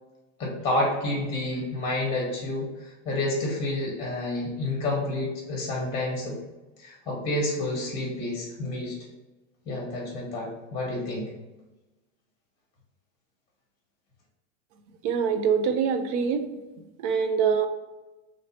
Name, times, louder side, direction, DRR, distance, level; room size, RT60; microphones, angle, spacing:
voice 1, 0.4-2.7 3.0-6.4 6.8-8.9 9.7-11.3, left 1 dB, 15° left, -2 dB, 0.9 m, -29 dB
voice 2, 15.0-16.5 17.0-17.7, right 6 dB, 40° right, 8 dB, 0.4 m, -24 dB
3.2 x 2.7 x 4.1 m, 1.1 s
supercardioid pair, 140°, 40 cm